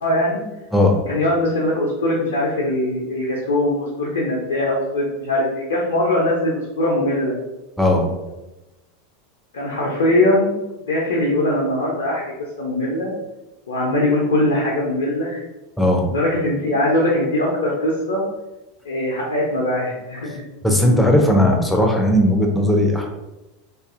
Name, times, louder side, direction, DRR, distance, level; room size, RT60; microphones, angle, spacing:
voice 1, 0.0-0.4 1.1-7.3 9.5-10.5 10.9-12.2 12.6-13.1 13.7-15.4 16.1-18.2 18.9-20.4, left 1 dB, 75° left, -4 dB, 0.5 m, -21 dB
voice 2, 0.7-1.1 7.8-8.1 15.8-16.1 20.6-23.1, left 1 dB, 5° left, 1 dB, 0.5 m, -17 dB
2.6 x 2.4 x 2.4 m, 1.0 s
hypercardioid pair, 90°, 0 cm